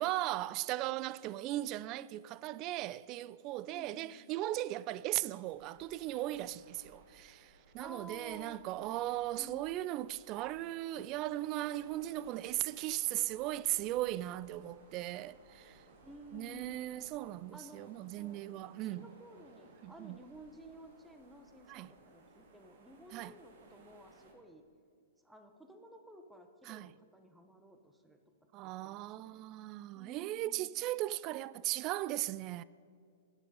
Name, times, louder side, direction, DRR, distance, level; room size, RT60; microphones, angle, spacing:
voice 1, 0.0-15.8 16.3-19.1 19.8-20.2 21.7-21.9 23.1-23.3 26.7-26.9 28.5-32.6, right 15 dB, 35° right, 0.3 m, -37 dB
voice 2, 3.6-4.2 7.8-8.9 9.4-9.6 16.0-16.8 17.5-18.5 18.8-24.6 25.2-28.2 28.6-29.5 29.9-30.7, right 1 dB, 5° right, 1.2 m, -54 dB
sound 1, 5.4-24.3, right 2 dB, 55° right, 2.3 m, -61 dB
12.0 x 9.0 x 5.3 m
hypercardioid pair, 115°, 0 cm